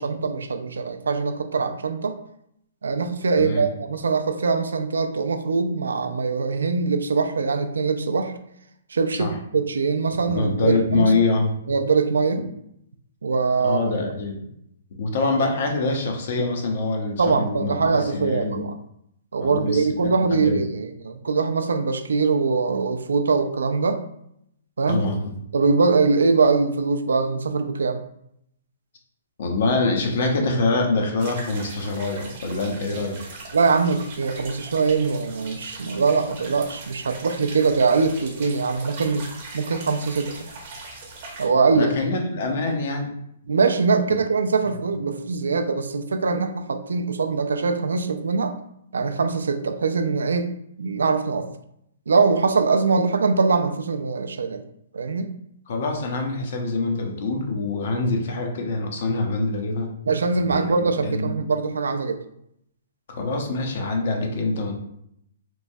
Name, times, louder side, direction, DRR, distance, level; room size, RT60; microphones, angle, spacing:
voice 1, 0.0-2.2 2.8-8.3 8.9-11.1 11.7-12.4 13.2-14.0 17.2-18.8 19.3-24.0 24.8-25.1 25.5-28.0 33.5-39.3 39.5-40.5 41.4-41.9 43.5-48.5 48.9-50.5 50.8-51.5 52.1-54.6 54.9-55.3 60.1-62.2, right 4 dB, 90° right, 7 dB, 0.3 m, -22 dB
voice 2, 10.3-11.5 13.6-14.5 15.0-18.6 19.4-20.6 24.9-25.3 29.4-33.2 41.7-43.1 55.7-59.9 60.5-61.3 63.1-64.7, left 3 dB, 60° left, 2 dB, 0.6 m, -25 dB
sound 1, 31.2-41.5, right 3 dB, 45° right, 0.7 m, -40 dB
3.1 x 2.2 x 2.6 m, 0.75 s
hypercardioid pair, 150°, 0 cm